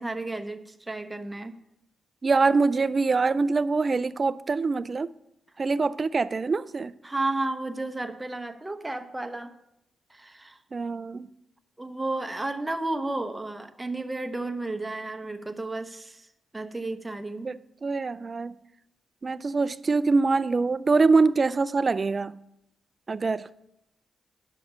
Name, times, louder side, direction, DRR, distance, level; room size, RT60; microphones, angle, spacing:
voice 1, 0.0-1.6 7.0-9.5 10.1-10.6 11.8-16.3 16.5-17.5, right 2 dB, 15° right, 0.9 m, -32 dB
voice 2, 2.2-5.1 5.6-6.9 10.7-11.3 17.4-18.5 19.2-22.3 23.1-23.5, right 4 dB, 40° right, 0.4 m, -24 dB
9.9 x 6.4 x 5.6 m
cardioid pair, 65°, 0 cm